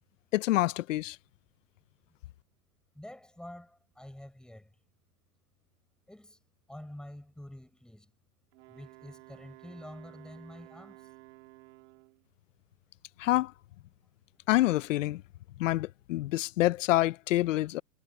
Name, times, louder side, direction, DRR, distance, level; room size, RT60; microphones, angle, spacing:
voice 1, 0.3-1.2 13.2-13.5 14.5-15.2 15.6-17.8, left 16 dB, 50° left, 0.7 m, -27 dB
voice 2, 2.9-4.7 6.1-6.4 6.7-8.1 8.7-11.1, left 1 dB, ahead, 7.3 m, -48 dB
Wind instrument woodwind instrument, 8.5-12.3, right 22 dB, 50° right, 3.5 m, -54 dB
hypercardioid pair, 145°, 49 cm